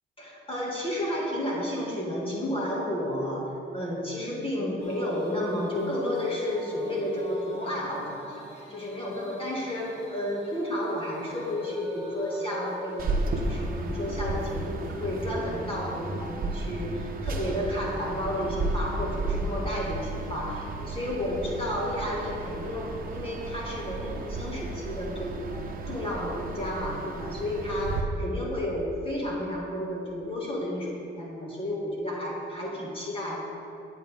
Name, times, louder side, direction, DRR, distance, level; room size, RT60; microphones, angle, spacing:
voice 1, 0.2-8.4 8.7-33.4, left 1 dB, 25° left, -4 dB, 2.2 m, -32 dB
sound 1, 4.8-15.4, equal, 65° left, 2.4 m, -45 dB
sound 2, 13.0-28.0, right 2 dB, 45° right, 1.0 m, -33 dB
11.0 x 9.2 x 3.6 m, 2.6 s
cardioid pair, 90°, 20 cm